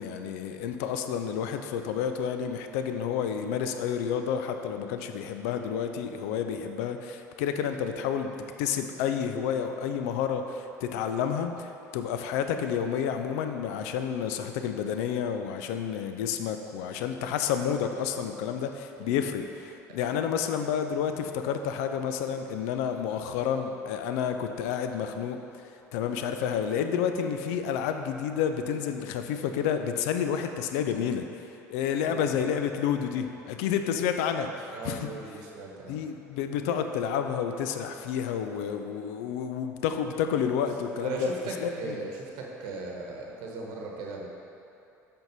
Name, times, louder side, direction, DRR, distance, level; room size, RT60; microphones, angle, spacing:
voice 1, 0.0-8.3 8.6-25.4 25.9-35.1 35.9-41.3 41.6-42.0, left 8 dB, 60° left, 7 dB, 0.5 m, -30 dB
voice 2, 34.7-36.0 41.0-44.3, right 3 dB, 55° right, -1 dB, 1.1 m, -38 dB
7.8 x 4.5 x 5.2 m, 2.8 s
figure-of-eight pair, 65°, 9 cm